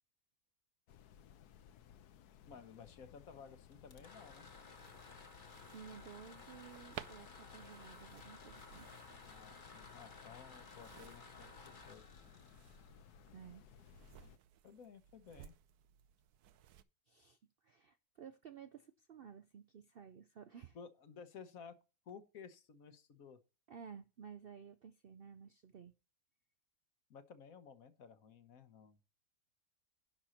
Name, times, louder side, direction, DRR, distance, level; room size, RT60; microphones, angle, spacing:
sound 1, 0.9-14.4, left 9 dB, 90° left, 1.3 m, -61 dB
voice 1, 2.5-4.5 9.2-12.0 14.6-15.5 20.7-21.8 22.1-23.4 27.1-29.0, left 6 dB, 65° left, 1.4 m, -55 dB
sound 2, 3.7-13.5, left 4 dB, 40° left, 1.0 m, -57 dB
sound 3, 4.7-16.8, right 11 dB, 80° right, 1.2 m, -58 dB
voice 2, 5.7-8.9 13.3-13.6 17.1-17.4 17.6-20.8 23.7-25.9, right 7 dB, 65° right, 0.6 m, -54 dB
11.0 x 4.4 x 6.3 m
omnidirectional pair, 1.6 m